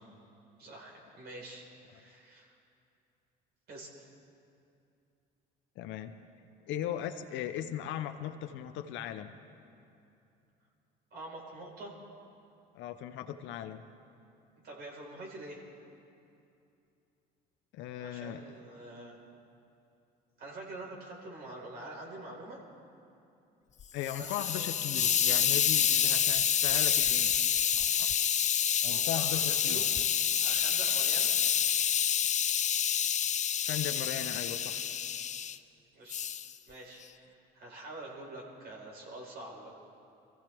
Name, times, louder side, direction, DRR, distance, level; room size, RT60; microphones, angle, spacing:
voice 1, 0.6-2.6 3.7-4.0 11.1-11.9 14.6-15.6 18.0-19.2 20.4-22.6 24.1-24.7 28.9-30.0 30.4-31.3 35.9-36.2 36.7-39.7, right 2 dB, 55° right, -2 dB, 4.5 m, -46 dB
voice 2, 5.8-6.1 6.7-9.3 12.7-13.8 17.7-18.4 23.9-27.3 27.8-28.1 28.8-29.9 33.6-34.9, left 11 dB, 70° left, 8 dB, 0.8 m, -38 dB
Hiss, 23.8-35.6 36.1-36.5, left 9 dB, 35° left, 0.5 m, -28 dB
24.0 x 15.0 x 3.5 m, 2.7 s
supercardioid pair, 80°, 20 cm